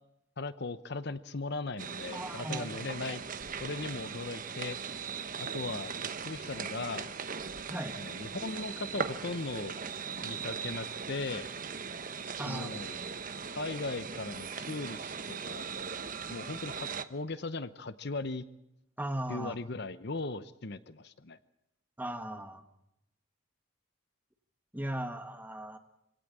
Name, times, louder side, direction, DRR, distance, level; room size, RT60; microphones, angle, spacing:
voice 1, 0.4-3.2 3.6-5.0 5.4-7.1 8.0-9.8 10.2-11.5 12.2-13.0 13.5-15.7 16.3-18.4 19.3-21.4, left 3 dB, 50° left, 14 dB, 0.8 m, -38 dB
sound 1, 1.8-17.0, right 6 dB, 40° right, 1.0 m, -39 dB
voice 2, 2.1-3.2 7.7-8.0 12.4-12.8 19.0-19.6 22.0-22.6 24.7-25.8, right 1 dB, 10° right, 6 dB, 1.7 m, -38 dB
26.0 x 18.0 x 8.6 m, 0.83 s
head